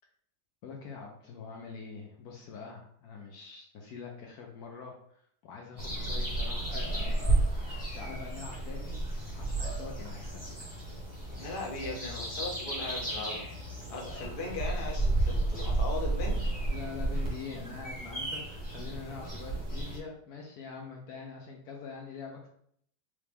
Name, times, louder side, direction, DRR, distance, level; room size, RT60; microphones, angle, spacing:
voice 1, 0.6-7.4 7.9-9.0 9.4-10.4 13.3-13.4 16.7-22.5, left 5 dB, 70° left, 0 dB, 1.0 m, -44 dB
sound 1, 5.8-20.0, right 2 dB, 15° right, 1.0 m, -32 dB
voice 2, 11.4-13.4 13.9-16.4, left 2 dB, 40° left, -1 dB, 0.8 m, -38 dB
3.7 x 3.1 x 3.4 m, 0.66 s
omnidirectional pair, 1.9 m